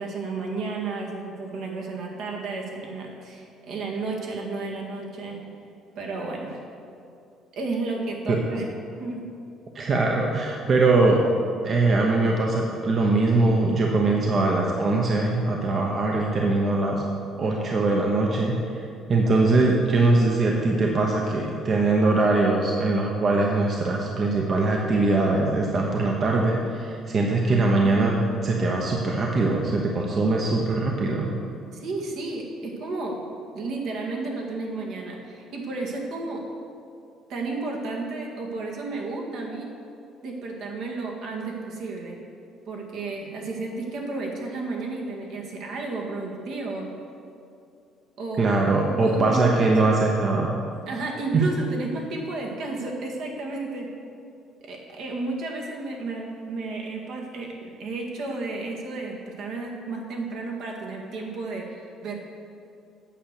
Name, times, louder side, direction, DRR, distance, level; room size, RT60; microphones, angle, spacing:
voice 1, 0.0-5.4 6.0-6.6 7.5-8.6 9.0-9.2 31.7-33.3 33.5-36.4 37.3-39.7 40.2-42.2 42.7-46.9 48.2-48.6 48.9-49.7 50.9-53.9 54.6-62.2, right 3 dB, 70° right, -1 dB, 1.9 m, -32 dB
voice 2, 9.7-11.2 11.6-17.0 17.4-18.5 19.1-28.1 28.4-31.3 48.4-50.5 51.3-51.4, right 3 dB, 40° right, 0 dB, 1.0 m, -22 dB
8.7 x 6.7 x 6.7 m, 2.6 s
cardioid pair, 110°, 0 cm